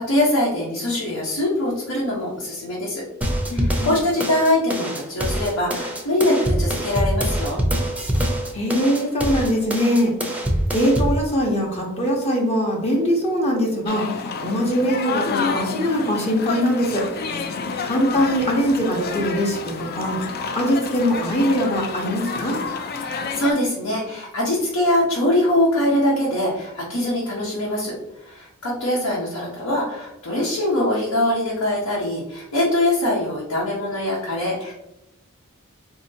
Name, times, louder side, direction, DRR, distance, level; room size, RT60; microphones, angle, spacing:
voice 1, 0.0-3.0 3.5-7.6 23.0-27.9 28.2-34.7, left 1 dB, 85° left, -6 dB, 1.0 m, -23 dB
sound 1, 3.2-11.2, right 1 dB, 5° right, 0.5 m, -24 dB
voice 2, 3.5-3.9 8.5-10.1 10.7-14.1 14.4-17.0 17.8-22.6, equal, 30° left, -1 dB, 0.8 m, -22 dB
sound 2, 13.9-23.5, left 5 dB, 45° left, 0.4 m, -29 dB
4.2 x 2.8 x 2.7 m, 0.90 s
head